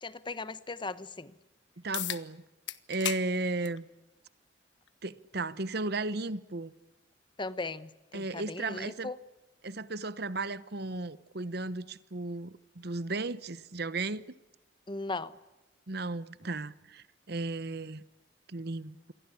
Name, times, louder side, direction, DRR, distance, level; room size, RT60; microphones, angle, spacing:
voice 1, 0.0-1.3 7.4-9.2 14.9-15.3, left 3 dB, 25° left, 1.1 m, -38 dB
voice 2, 1.8-2.4 2.9-3.9 5.0-6.7 8.1-9.1 9.6-14.2 15.9-18.0 18.5-19.1, right 3 dB, 60° right, 1.1 m, -35 dB
sound 1, 1.9-2.2 2.7-3.2 3.6-3.8 4.9-5.0 9.9-10.0, left 12 dB, 85° left, 1.4 m, -34 dB
28.5 x 23.5 x 8.5 m
head